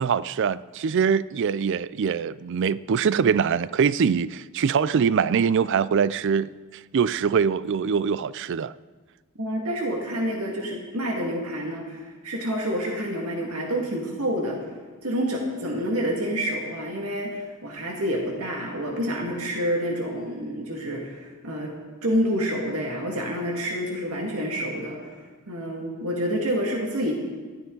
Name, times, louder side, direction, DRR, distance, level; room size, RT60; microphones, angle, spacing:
voice 1, 0.0-6.5 6.9-8.7, right 6 dB, 55° right, 0.4 m, -23 dB
voice 2, 9.4-14.6 15.0-21.7 22.0-25.0 25.5-27.1, equal, 80° right, 2.0 m, -28 dB
19.0 x 14.0 x 3.9 m
head